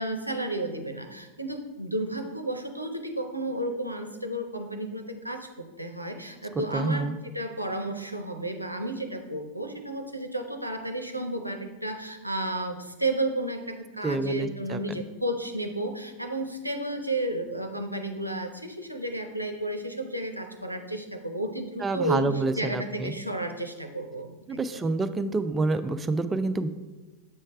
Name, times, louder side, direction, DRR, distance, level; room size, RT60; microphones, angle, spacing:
voice 1, 0.0-5.5 5.8-24.8, right 1 dB, 90° right, 5 dB, 0.5 m, -32 dB
voice 2, 6.5-7.1 14.0-14.8 21.8-23.1 24.5-26.7, right 3 dB, 15° right, 10 dB, 0.3 m, -28 dB
7.3 x 3.2 x 4.7 m, 1.2 s
figure-of-eight pair, 90°, 0 cm